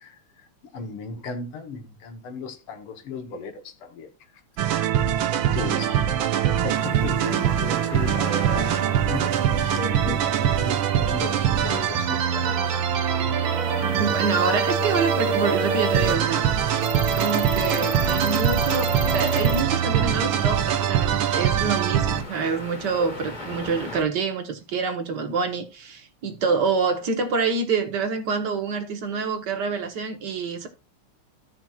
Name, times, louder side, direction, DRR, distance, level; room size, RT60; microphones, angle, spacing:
voice 1, 0.7-4.1 5.5-6.0 6.6-8.8 9.1-12.8, left 4 dB, 80° left, 2.1 m, -36 dB
sound 1, 4.6-22.2, right 9 dB, 70° right, 1.5 m, -23 dB
sound 2, 6.7-24.0, left 3 dB, 25° left, 1.3 m, -39 dB
sound 3, 13.4-19.6, left 1 dB, 5° right, 0.7 m, -30 dB
voice 2, 14.0-16.4 17.0-30.7, right 5 dB, 55° right, 1.6 m, -26 dB
15.0 x 6.0 x 2.4 m
omnidirectional pair, 2.4 m